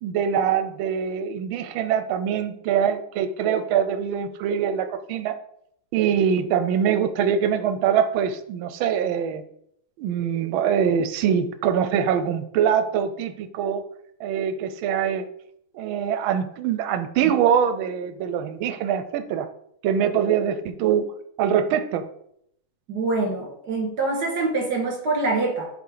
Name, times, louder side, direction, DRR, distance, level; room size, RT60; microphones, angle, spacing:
voice 1, 0.0-5.3 5.9-9.4 10.0-13.8 14.2-15.2 15.7-19.5 19.8-21.0 21.4-22.0, right 8 dB, 80° right, 11 dB, 1.4 m, -23 dB
voice 2, 22.9-25.7, right 3 dB, 50° right, -1 dB, 2.3 m, -25 dB
7.1 x 4.6 x 3.8 m, 0.72 s
omnidirectional pair, 2.2 m